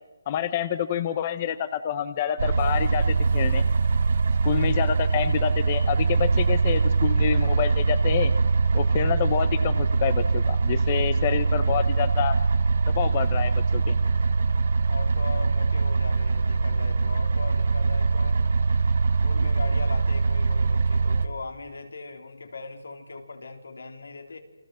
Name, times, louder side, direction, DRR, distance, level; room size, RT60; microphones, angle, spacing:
voice 1, 0.3-3.6 4.4-8.3 8.7-12.4 12.9-14.0, left 9 dB, 20° left, 13 dB, 0.8 m, -27 dB
sound 1, 2.4-21.3, right 4 dB, 45° right, 1.5 m, -23 dB
voice 2, 14.9-18.4 19.2-24.4, left 3 dB, 80° left, 4 dB, 4.3 m, -39 dB
29.0 x 24.0 x 6.3 m, 1.2 s
hypercardioid pair, 175°, 0 cm